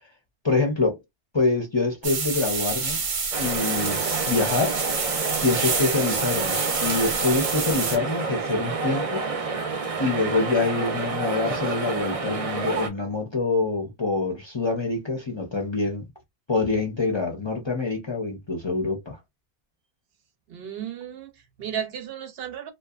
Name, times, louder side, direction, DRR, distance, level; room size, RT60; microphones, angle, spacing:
voice 1, 0.4-1.0 1.3-3.0 3.4-4.0 4.3-4.8 5.4-9.2 10.0-16.1 16.5-19.2, left 3 dB, 35° left, 0.5 m, -25 dB
sound 1, 2.0-8.0, right 5 dB, 90° right, 1.1 m, -28 dB
sound 2, 3.3-12.9, right 4 dB, 45° right, 0.5 m, -29 dB
voice 2, 20.5-22.7, right 9 dB, 70° right, 0.8 m, -34 dB
2.7 x 2.2 x 2.3 m
omnidirectional pair, 1.1 m